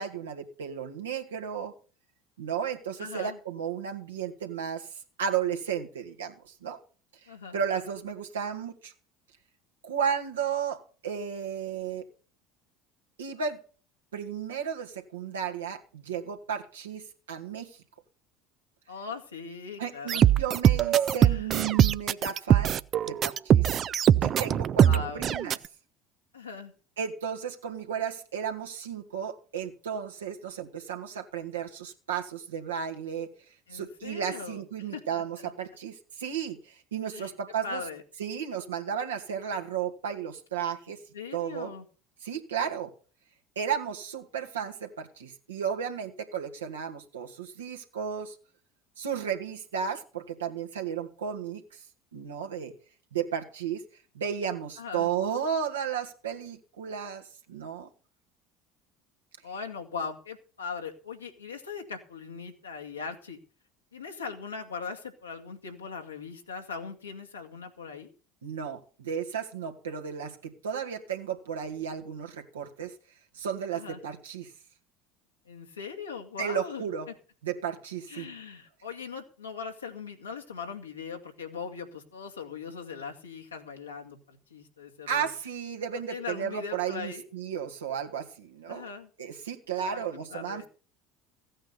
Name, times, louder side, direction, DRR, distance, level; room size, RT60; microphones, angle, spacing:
voice 1, 0.0-1.7 2.4-4.9 5.2-6.8 7.5-8.9 9.8-12.0 13.2-13.6 14.1-17.8 19.8-22.8 23.0-23.7 24.2-25.6 27.0-33.3 33.7-37.8 38.2-41.0 41.3-41.7 42.2-42.9 43.6-48.4 49.0-51.8 52.1-52.7 53.1-53.8 54.1-57.2 57.5-57.9 68.4-72.9 73.3-74.5 76.4-77.1 77.4-78.3 85.1-88.8 89.2-90.6, right 8 dB, 80° right, 4 dB, 2.0 m, -33 dB
voice 2, 3.0-3.4 7.3-7.6 18.9-20.2 21.2-21.5 24.8-25.2 26.3-26.7 33.7-35.5 37.1-37.3 37.6-38.0 41.1-41.9 54.8-55.1 59.4-63.4 63.9-68.1 73.7-74.0 75.5-77.1 78.1-85.3 85.9-87.3 88.7-89.1 89.8-90.0 90.3-90.7, left 5 dB, 85° left, 2 dB, 2.3 m, -40 dB
sound 1, 20.1-25.5, right 10 dB, 40° right, 0.6 m, -22 dB
16.0 x 8.9 x 5.5 m, 0.38 s
figure-of-eight pair, 65°, 0 cm